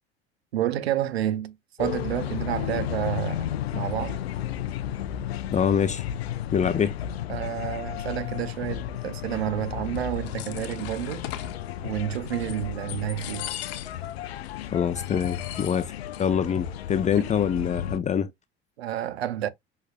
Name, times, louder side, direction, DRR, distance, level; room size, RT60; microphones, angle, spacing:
voice 1, 0.5-4.2 7.3-11.2 11.8-13.6 17.2-17.3 18.8-19.5, right 11 dB, 75° right, 0.7 m, -30 dB
sound 1, 1.8-18.0, left 10 dB, 75° left, 0.5 m, -33 dB
voice 2, 5.5-6.0 6.5-7.0 14.7-15.9 16.2-18.3, left 7 dB, 25° left, 0.5 m, -25 dB
sound 2, 10.0-11.6 12.1-12.6 12.9-14.1 14.4-14.5 14.9-16.3 16.6-16.7 16.9-17.4, left 13 dB, 50° left, 1.0 m, -40 dB
6.3 x 3.2 x 2.3 m
figure-of-eight pair, 70°, 31 cm